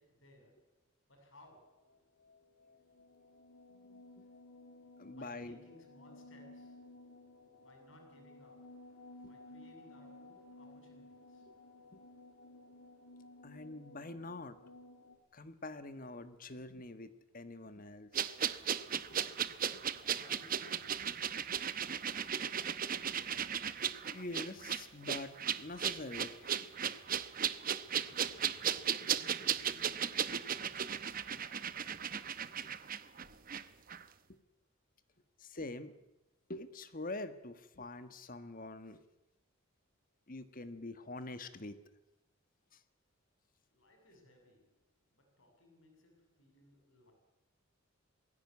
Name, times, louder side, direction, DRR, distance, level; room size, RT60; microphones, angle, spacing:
voice 1, 0.0-2.1 5.1-6.9 7.6-9.0 9.2-11.5 19.8-21.2 28.0-28.8 29.1-32.3 43.7-47.1, left 1 dB, 60° left, 7.1 m, -62 dB
sound 1, 1.8-15.2, left 2 dB, 80° left, 3.1 m, -56 dB
voice 2, 3.9-4.2 5.0-5.6 9.2-9.3 11.9-12.0 13.4-14.6 15.3-18.4 19.1-19.4 19.7-19.8 24.1-26.7 32.5-32.7 34.3-34.4 35.4-35.9 36.5-39.0 40.3-41.8 42.7-42.8, left 2 dB, 40° left, 1.4 m, -45 dB
sound 2, 18.1-33.6 33.9-34.0, right 8 dB, 40° right, 0.9 m, -36 dB
21.0 x 16.5 x 9.6 m
head